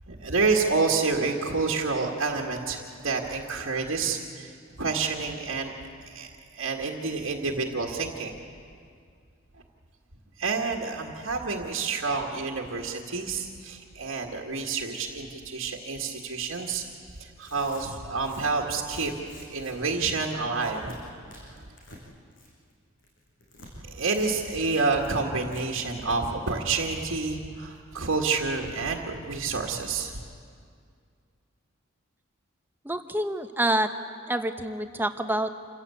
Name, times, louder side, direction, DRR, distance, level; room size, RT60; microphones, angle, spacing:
voice 1, 0.1-4.5 4.8-8.3 10.4-16.8 17.2-19.1 19.5-21.0 21.4-21.5 23.8-30.1, right 4 dB, 70° right, -1 dB, 1.8 m, -28 dB
Tearing, 16.6-16.8 17.3-19.7 20.0-20.2 20.5-21.0 21.3-22.0 22.3-22.7 23.0-23.7 24.1-24.3 24.5-24.6 25.0-25.1 25.4-25.6, left 1 dB, 60° left, 6.0 m, -49 dB
voice 2, 32.8-33.9 34.3-35.5, right 1 dB, 10° right, 8 dB, 0.9 m, -27 dB
27.5 x 15.5 x 8.5 m, 2.2 s
head